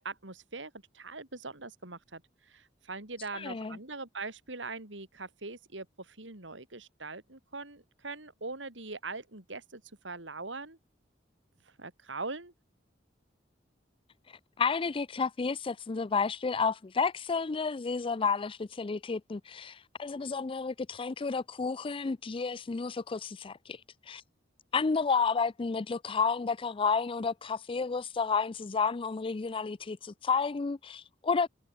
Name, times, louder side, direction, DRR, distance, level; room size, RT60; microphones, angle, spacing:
voice 1, 0.0-10.8 11.8-12.5, right 3 dB, 80° right, 4.1 m, -42 dB
voice 2, 3.3-3.8 14.6-23.8 24.1-24.2 24.7-31.5, left 5 dB, 30° left, 0.4 m, -31 dB
head